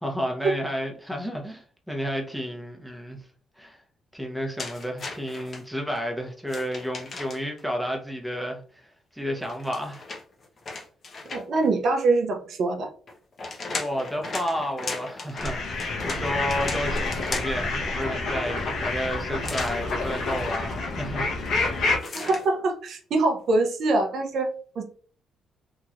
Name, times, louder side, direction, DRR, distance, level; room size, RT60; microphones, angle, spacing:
voice 1, 0.0-3.2 3.6-3.8 4.1-10.0 13.7-21.7, equal, ahead, 0.9 m, -31 dB
sound 1, 4.6-5.6 6.5-7.6 9.4-11.7 13.1-17.7 19.4-19.8 22.0-22.5, left 3 dB, 45° left, 0.8 m, -36 dB
voice 2, 11.3-12.9 22.1-24.5 24.8-24.9, right 3 dB, 65° right, 0.6 m, -24 dB
sound 2, 15.3-22.0, left 3 dB, 75° left, 0.9 m, -28 dB
3.0 x 2.8 x 2.4 m
cardioid pair, 90°, 0 cm